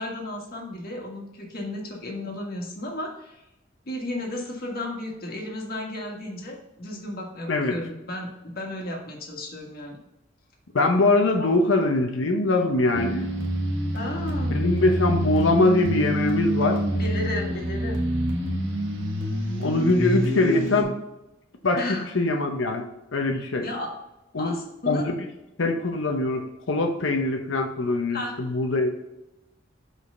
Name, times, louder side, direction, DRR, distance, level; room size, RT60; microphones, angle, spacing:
voice 1, 0.0-3.4 3.8-8.3 8.5-10.0 11.4-11.5 13.9-14.6 17.0-18.0 21.7-22.1 23.3-23.9 24.4-25.0 28.1-28.3, left 1 dB, 50° left, 0 dB, 1.6 m, -33 dB
voice 2, 10.7-13.3 14.5-16.8 19.6-20.9 21.6-21.8 22.1-22.8 23.1-23.7 24.3-24.5 24.9-25.1 25.6-28.9, left 2 dB, 85° left, 3 dB, 0.8 m, -22 dB
sound 1, 12.9-20.8, equal, 80° right, 1.3 m, -26 dB
5.4 x 5.0 x 3.8 m, 0.93 s
head